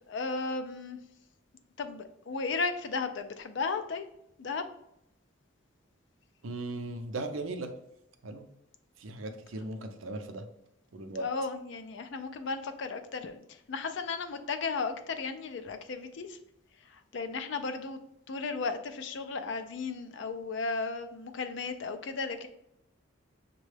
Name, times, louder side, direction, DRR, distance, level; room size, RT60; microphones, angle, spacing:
voice 1, 0.1-1.0 1.8-4.1 4.4-4.7 11.2-16.4 16.8-18.0 18.3-22.5, left 4 dB, 60° left, 8 dB, 0.4 m, -35 dB
voice 2, 6.4-7.7 8.2-8.4 9.0-10.5 10.9-11.2, right 2 dB, 75° right, 6 dB, 0.5 m, -37 dB
6.2 x 2.2 x 3.3 m, 0.79 s
head